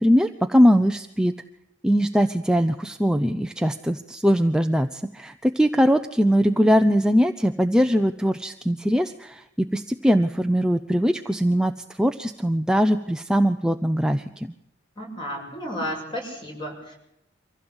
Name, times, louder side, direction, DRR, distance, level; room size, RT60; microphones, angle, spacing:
voice 1, 0.0-1.3 1.8-11.7 12.0-14.5, equal, 5° right, 6 dB, 0.7 m, -21 dB
voice 2, 15.0-16.9, equal, 25° left, 1 dB, 7.2 m, -32 dB
25.0 x 16.0 x 8.1 m, 0.82 s
head